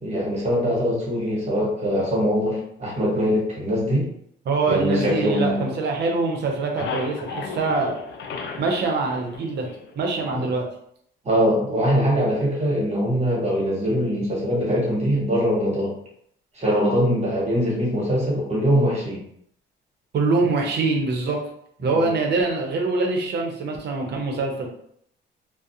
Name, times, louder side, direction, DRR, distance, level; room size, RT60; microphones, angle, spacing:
voice 1, 0.0-4.1 4.7-5.7 10.3-10.5 11.2-15.9 16.5-19.2 21.8-22.1, equal, 35° right, -5 dB, 1.2 m, -22 dB
voice 2, 4.5-8.0 8.6-9.7 10.0-10.7 20.1-21.4 21.8-24.7, right 3 dB, 60° right, 1 dB, 0.7 m, -24 dB
sound 1, 5.0-6.1 6.4-10.1, left 5 dB, 65° left, 0.4 m, -35 dB
2.3 x 2.0 x 2.7 m, 0.68 s
cardioid pair, 90°, 20 cm